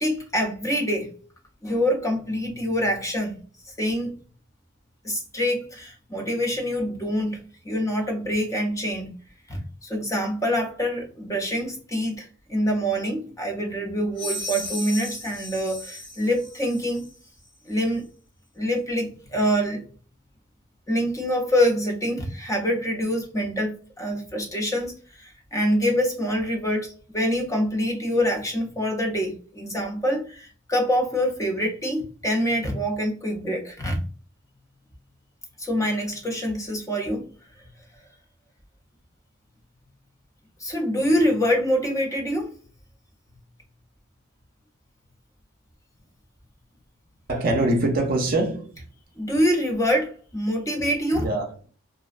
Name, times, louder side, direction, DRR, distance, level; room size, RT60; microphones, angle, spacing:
voice 1, 0.0-1.1 1.6-3.4 3.8-4.2 5.0-9.1 9.5-17.1 17.7-18.1 18.6-19.8 20.9-34.0 35.6-37.3 40.6-42.5 49.2-51.3, equal, 15° left, 0.5 m, -25 dB
sound 1, 14.1-17.1, left 1 dB, 55° left, 1.4 m, -35 dB
voice 2, 47.3-48.7 51.1-51.7, right 2 dB, 45° right, 0.5 m, -24 dB
2.4 x 2.1 x 2.4 m
head